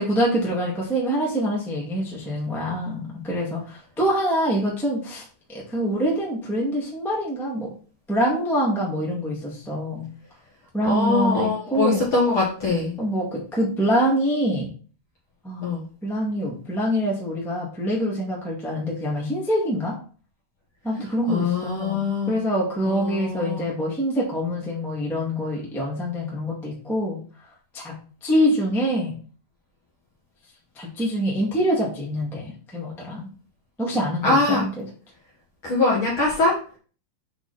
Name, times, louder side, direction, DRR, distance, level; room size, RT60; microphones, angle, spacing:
voice 1, 0.0-7.7 8.1-10.0 10.7-12.1 13.0-14.7 15.4-15.7 16.0-20.0 20.8-27.2 27.7-27.9 28.2-29.1 30.7-33.3 33.8-34.8, equal, ahead, -4 dB, 1.2 m, -25 dB
voice 2, 10.8-12.9 15.6-15.9 21.3-22.4 22.8-23.7 34.2-34.6 35.6-36.5, left 3 dB, 45° left, -4 dB, 1.8 m, -22 dB
7.9 x 4.1 x 4.2 m, 0.40 s
omnidirectional pair, 4.3 m